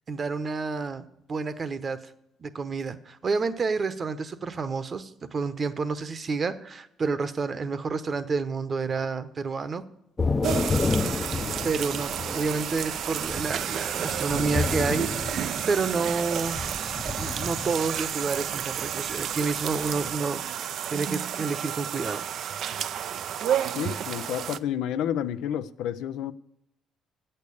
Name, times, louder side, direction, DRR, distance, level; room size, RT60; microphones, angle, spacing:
voice 1, 0.1-2.0 2.4-9.8 11.6-15.1 15.7-16.6 17.2-20.4 20.9-22.2, right 4 dB, 40° right, 0.9 m, -29 dB
Thunder / Rain, 10.2-20.1, left 4 dB, 30° left, 0.6 m, -31 dB
sound 1, 10.4-24.6, right 9 dB, 65° right, 0.4 m, -31 dB
voice 2, 11.4-11.7 23.7-26.3, left 10 dB, 75° left, 0.4 m, -30 dB
8.4 x 6.7 x 8.3 m
supercardioid pair, 70°, 0 cm